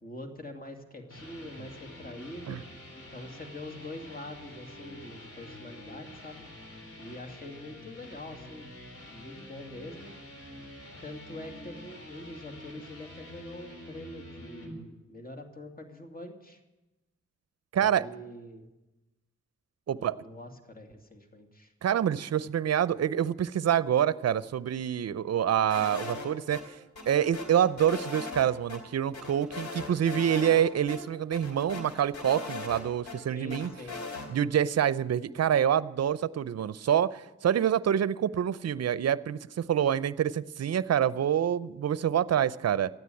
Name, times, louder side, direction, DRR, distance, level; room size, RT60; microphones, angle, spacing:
voice 1, 0.0-2.6 3.1-6.4 7.0-8.7 9.0-10.1 11.0-16.6 17.8-18.7 19.9-21.7 33.3-34.0, left 1 dB, 30° left, 4 dB, 2.4 m, -44 dB
sound 1, 0.8-14.8, left 1 dB, 50° left, 3.5 m, -47 dB
voice 2, 17.7-18.1 19.9-20.2 21.8-26.7 27.1-33.7 34.3-42.9, right 9 dB, 60° right, 17 dB, 0.6 m, -26 dB
sound 2, 25.7-26.6 27.0-28.4 28.7-28.8 29.1-30.6 30.9-31.0 31.3-33.2 33.5-34.3, left 3 dB, 75° left, 2.9 m, -39 dB
13.5 x 9.4 x 9.1 m, 1.0 s
cardioid pair, 50°, 29 cm